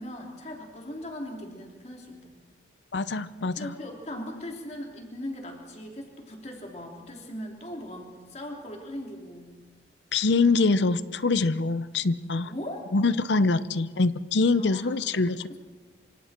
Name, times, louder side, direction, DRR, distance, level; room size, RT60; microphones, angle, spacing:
voice 1, 0.0-2.4 3.5-9.5 12.4-12.9 14.6-15.0 15.5-15.6, left 1 dB, 35° left, 0 dB, 3.4 m, -39 dB
voice 2, 2.9-3.7 10.1-12.5 12.9-15.6, left 3 dB, 75° left, 15 dB, 0.7 m, -24 dB
27.5 x 25.5 x 4.5 m, 1.5 s
head